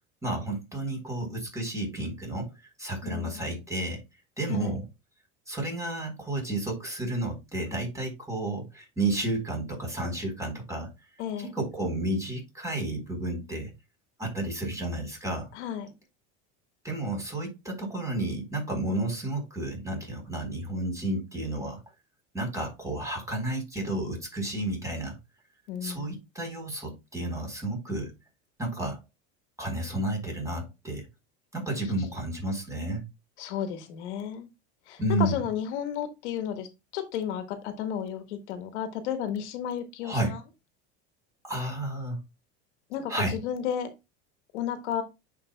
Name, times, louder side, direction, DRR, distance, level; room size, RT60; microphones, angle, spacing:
voice 1, 0.2-4.0 4.4-4.8 5.5-10.9 11.4-13.7 14.2-15.5 16.8-21.8 22.3-25.2 25.8-28.1 28.6-29.0 29.6-31.1 31.5-33.1 35.0-35.4 40.0-40.4 41.4-42.2 43.1-43.4, right 1 dB, 10° right, 4.0 m, -31 dB
voice 2, 3.0-3.6 4.5-4.8 11.2-11.5 15.5-15.9 25.7-26.2 33.4-34.5 34.9-36.7 36.9-40.4 42.9-43.9 44.5-45.0, left 9 dB, 90° left, 1.7 m, -33 dB
10.0 x 5.3 x 2.3 m
supercardioid pair, 120°, 34 cm